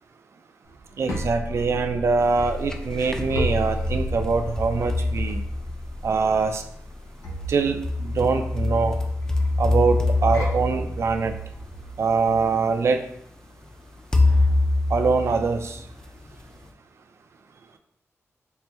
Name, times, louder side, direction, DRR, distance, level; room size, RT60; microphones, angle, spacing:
sound 1, 0.7-12.6, equal, 85° left, 0.9 m, -33 dB
voice 1, 1.0-5.4 6.0-6.6 7.5-9.0 9.6-11.3 12.0-13.0 14.9-15.8, right 4 dB, 60° right, 6 dB, 0.4 m, -23 dB
sound 2, 2.4-3.3 3.9-6.2 7.4-11.8 12.7-12.8 14.1-16.0, left 2 dB, 10° left, 0.4 m, -25 dB
4.1 x 2.2 x 3.4 m, 0.71 s
cardioid pair, 75°, 5 cm